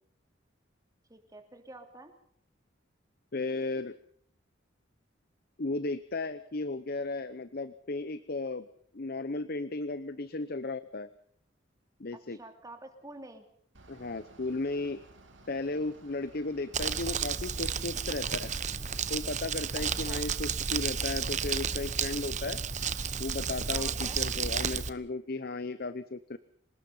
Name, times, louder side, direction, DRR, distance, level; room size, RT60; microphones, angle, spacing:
voice 1, 1.1-2.1 12.3-13.5 20.1-20.3 23.7-24.2, right 2 dB, 20° right, 6 dB, 3.0 m, -48 dB
voice 2, 3.3-4.0 5.6-8.7 8.9-11.1 12.0-12.4 13.9-15.0 15.5-18.5 19.1-22.6 23.2-26.4, left 3 dB, 50° left, 13 dB, 0.9 m, -35 dB
Bus / Idling, 13.7-23.8, right 2 dB, 75° right, 3.1 m, -56 dB
Crumpling crinkling, 16.7-24.9, right 6 dB, 40° right, 1.0 m, -32 dB
27.5 x 19.0 x 5.6 m, 0.63 s
head